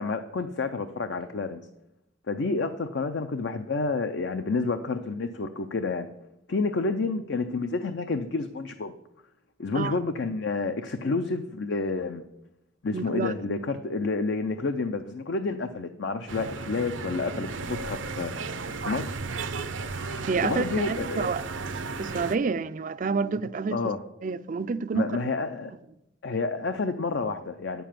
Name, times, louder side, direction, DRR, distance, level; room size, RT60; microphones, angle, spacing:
voice 1, 0.0-1.6 2.3-6.1 6.5-8.9 9.6-12.2 12.8-18.3 18.8-19.2 20.4-21.3 23.7-24.0 24.9-25.7 26.2-27.8, left 3 dB, 65° left, 0.6 m, -29 dB
voice 2, 12.9-13.3 20.3-21.4 22.0-23.8 24.2-25.1, right 4 dB, 45° right, 0.4 m, -28 dB
sound 1, 16.3-22.4, right 4 dB, 80° right, 0.7 m, -34 dB
9.2 x 6.9 x 7.5 m
head